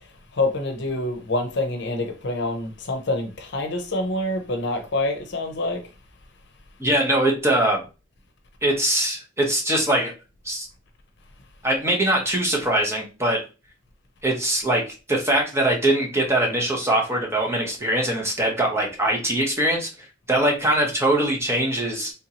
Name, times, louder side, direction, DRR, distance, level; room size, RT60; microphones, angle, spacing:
voice 1, 0.3-5.8, left 2 dB, 60° left, 0.7 m, -26 dB
voice 2, 6.8-7.8 8.6-10.1 10.4-10.7 11.6-13.4 14.2-14.8 15.1-22.1, right 1 dB, 15° right, 0.9 m, -22 dB
3.6 x 2.7 x 2.8 m
head